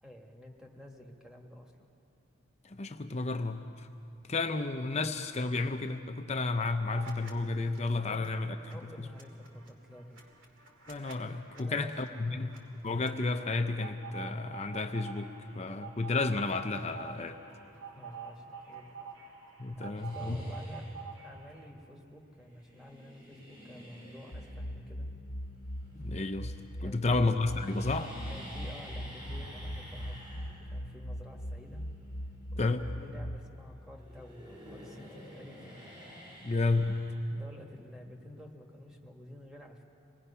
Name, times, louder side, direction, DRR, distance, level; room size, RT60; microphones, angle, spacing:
voice 1, 0.0-1.9 8.0-8.3 8.7-10.2 11.5-12.5 17.9-19.0 19.7-20.8 21.2-25.1 26.8-27.2 28.3-31.8 32.5-35.7 37.3-39.8, equal, 5° right, 1 dB, 1.6 m, -50 dB
voice 2, 2.6-3.9 4.3-8.6 9.0-9.1 10.9-12.5 12.8-17.4 19.6-20.5 25.9-26.5 26.8-28.1 32.6-32.9 36.4-37.1, left 3 dB, 30° left, 7 dB, 0.6 m, -32 dB
sound 1, 6.9-7.3 7.6-21.7, right 6 dB, 65° right, 2.4 m, -48 dB
sound 2, 19.9-21.2 22.5-26.7 27.0-33.6 33.9-37.7, equal, 25° right, 4.4 m, -48 dB
sound 3, 24.3-33.4, equal, 60° left, 0.9 m, -41 dB
26.0 x 19.0 x 5.6 m, 2.8 s
head